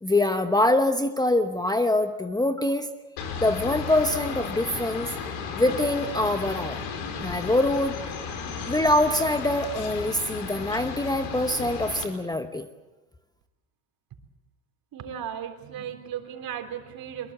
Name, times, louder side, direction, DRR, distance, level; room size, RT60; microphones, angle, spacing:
voice 1, 0.0-2.9 3.4-5.1 5.6-6.8 7.2-8.0 8.7-12.7, left 1 dB, 10° left, 8 dB, 1.0 m, -24 dB
sound 1, 3.2-12.1, left 6 dB, 80° left, 4.5 m, -34 dB
voice 2, 14.9-17.3, right 9 dB, 50° right, 6 dB, 3.8 m, -36 dB
23.5 x 21.5 x 7.4 m, 1.1 s
supercardioid pair, 100°, 45 cm